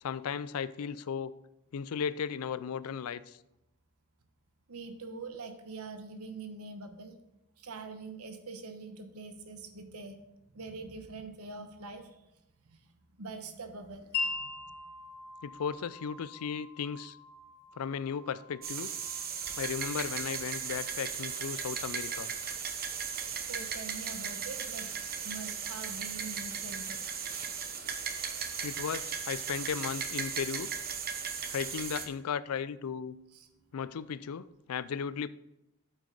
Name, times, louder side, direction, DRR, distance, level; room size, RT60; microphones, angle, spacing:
voice 1, 0.0-1.3 1.7-3.4 15.4-17.2 17.8-18.9 19.6-22.3 28.6-30.7 31.5-33.2 33.7-35.3, left 7 dB, 70° left, 17 dB, 0.4 m, -36 dB
voice 2, 4.7-7.2 7.6-10.2 10.5-12.2 12.7-12.8 13.2-14.5 23.5-24.9 25.2-27.0 31.2-31.5 33.3-33.6, right 3 dB, 75° right, 7 dB, 1.1 m, -44 dB
Wind chime, 14.1-21.8, left 4 dB, 50° left, 2.1 m, -42 dB
sound 1, 18.6-32.1, right 7 dB, 45° right, 1.0 m, -37 dB
8.8 x 8.2 x 3.9 m, 0.90 s
head